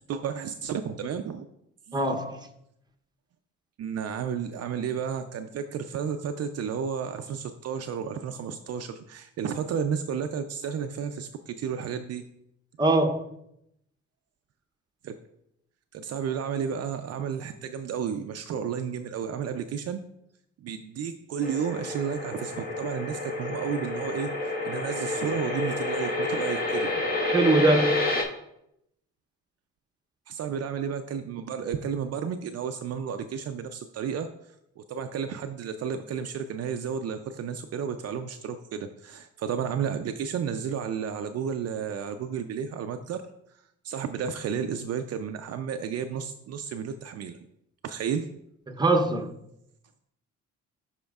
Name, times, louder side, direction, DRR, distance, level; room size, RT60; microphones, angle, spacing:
voice 1, 0.1-1.5 1.9-2.0 3.8-12.2 15.0-15.1 15.9-20.0 20.6-26.9 30.3-34.3 34.8-43.2 43.8-47.4 47.8-48.3, right 7 dB, 55° right, 0.5 m, -32 dB
voice 2, 1.9-2.5 12.8-13.3 27.3-28.0 48.7-49.3, right 2 dB, 15° right, 0.8 m, -23 dB
sound 1, 21.4-28.2, left 2 dB, 30° left, 1.3 m, -29 dB
11.5 x 4.3 x 2.4 m
cardioid pair, 90°, 30 cm